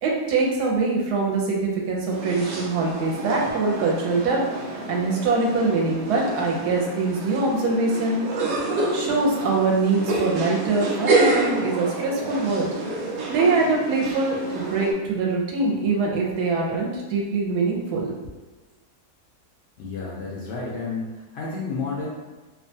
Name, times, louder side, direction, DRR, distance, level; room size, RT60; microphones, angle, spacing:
voice 1, 0.0-8.2 8.9-12.7 13.3-18.1, right 3 dB, 85° right, -2 dB, 1.1 m, -23 dB
sound 1, 2.1-14.9, right 2 dB, 70° right, 0.6 m, -28 dB
voice 2, 19.8-22.1, left 4 dB, 85° left, -5 dB, 0.5 m, -31 dB
2.8 x 2.2 x 2.6 m, 1.2 s
omnidirectional pair, 1.7 m